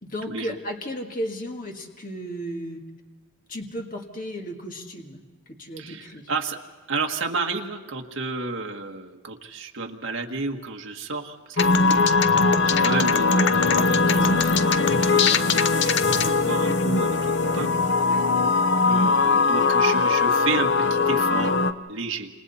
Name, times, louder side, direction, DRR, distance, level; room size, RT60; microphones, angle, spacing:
voice 1, 0.0-2.8 3.5-5.2 5.6-6.3 18.0-18.3, equal, 40° left, 2 dB, 1.9 m, -34 dB
voice 2, 5.8-6.6 6.9-11.7 12.3-15.5 15.8-18.2 18.7-22.3, right 3 dB, 65° right, 2 dB, 1.6 m, -32 dB
sound 1, 11.6-21.7, left 4 dB, 55° left, 0.8 m, -20 dB
29.5 x 27.5 x 4.2 m, 1.3 s
head